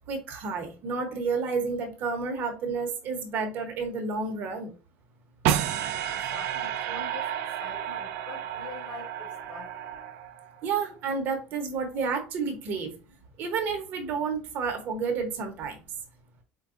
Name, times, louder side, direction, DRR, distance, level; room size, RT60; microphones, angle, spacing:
voice 1, 0.1-4.7 10.6-12.9 13.4-15.8, right 5 dB, 55° right, 0.9 m, -30 dB
sound 1, 5.4-10.7, right 10 dB, 75° right, 0.3 m, -31 dB
voice 2, 6.1-9.8, left 4 dB, 50° left, 1.7 m, -45 dB
4.6 x 2.2 x 2.5 m
cardioid pair, 130°, 4 cm